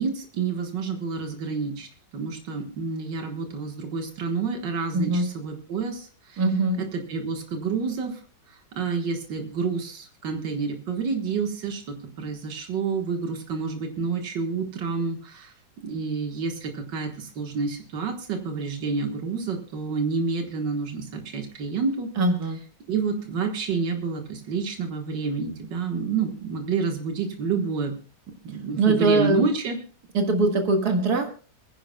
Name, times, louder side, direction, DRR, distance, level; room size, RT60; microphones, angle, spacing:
voice 1, 0.0-1.9 2.1-6.4 6.8-8.2 8.8-15.5 15.8-22.1 22.9-27.9 28.4-29.8, right 5 dB, 90° right, 4 dB, 2.1 m, -29 dB
voice 2, 4.9-5.3 6.4-6.8 22.2-22.6 28.8-29.4 30.1-31.3, right 2 dB, 60° right, 4 dB, 2.3 m, -21 dB
27.5 x 10.0 x 2.3 m, 0.38 s
omnidirectional pair, 1.9 m